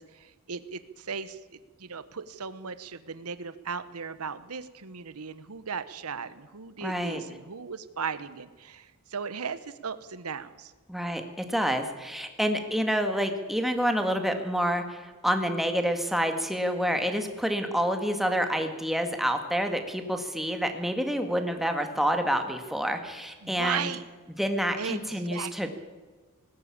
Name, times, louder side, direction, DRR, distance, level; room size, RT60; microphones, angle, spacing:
voice 1, 0.0-10.7 23.4-24.0 24.8-25.7, right 6 dB, 90° right, 13 dB, 1.1 m, -37 dB
voice 2, 6.8-7.2 10.9-23.9 24.4-25.7, equal, ahead, 6 dB, 2.0 m, -28 dB
19.0 x 16.5 x 8.7 m, 1.3 s
head